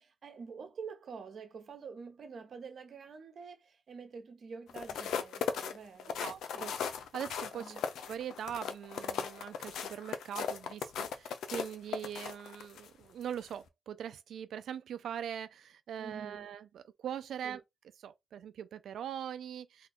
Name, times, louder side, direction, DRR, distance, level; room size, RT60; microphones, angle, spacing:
voice 1, 0.0-6.7 7.5-7.8 16.0-16.5 17.4-17.6, right 5 dB, 65° right, 0.8 m, -47 dB
sound 1, 4.7-12.9 13.3-13.5, left 7 dB, 85° left, 0.4 m, -37 dB
voice 2, 6.2-6.7 7.1-7.8 8.1-17.6 18.0-19.9, right 9 dB, 80° right, 0.4 m, -41 dB
2.6 x 2.3 x 3.5 m
cardioid pair, 70°, 0 cm